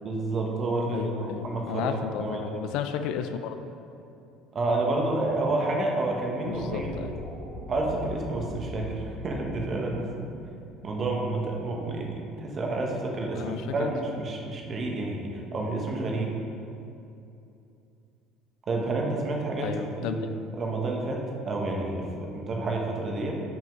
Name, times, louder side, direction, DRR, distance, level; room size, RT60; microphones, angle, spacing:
voice 1, 0.0-2.6 4.5-6.9 7.7-10.2 10.8-16.3 18.7-19.7 20.0-20.2 20.6-23.4, right 2 dB, 30° right, 0 dB, 1.1 m, -29 dB
voice 2, 0.9-3.6 6.5-7.2 13.3-13.9 19.6-20.2, left 8 dB, 70° left, 8 dB, 0.4 m, -33 dB
sound 1, 6.4-12.7, left 1 dB, 10° right, 1.5 m, -41 dB
6.3 x 5.3 x 5.2 m, 2.7 s
cardioid pair, 140°, 0 cm